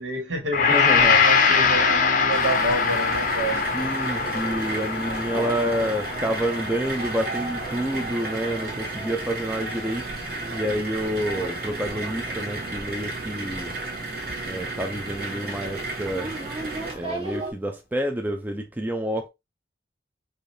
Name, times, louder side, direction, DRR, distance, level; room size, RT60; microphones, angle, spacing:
voice 1, 0.0-3.7, right 2 dB, 80° right, 1.7 m, -28 dB
Gong, 0.5-8.9 9.3-9.5, left 5 dB, 45° left, 0.6 m, -23 dB
voice 2, 0.7-1.2 3.7-13.8 14.4-16.3 16.9-19.3, equal, 10° right, 0.4 m, -28 dB
sound 1, 0.8-17.5, right 2 dB, 30° right, 1.3 m, -38 dB
sound 2, 2.3-16.9, right 2 dB, 50° right, 1.2 m, -33 dB
4.8 x 2.7 x 2.7 m
head